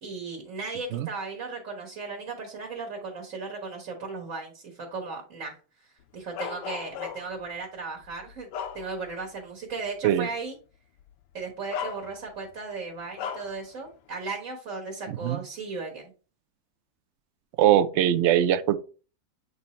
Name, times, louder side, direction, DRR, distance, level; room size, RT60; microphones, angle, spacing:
voice 1, 0.0-5.6 5.8-8.5 8.7-10.6 11.3-16.0, right 4 dB, 55° right, 1.7 m, -36 dB
Bark, 6.4-7.4 8.0-9.3 9.7-9.9 11.0-11.1 11.7-12.5 13.2-13.6, left 7 dB, 90° left, 1.2 m, -36 dB
voice 2, 15.1-15.4 17.6-18.8, right 11 dB, 70° right, 0.6 m, -21 dB
8.2 x 2.7 x 4.2 m
omnidirectional pair, 1.7 m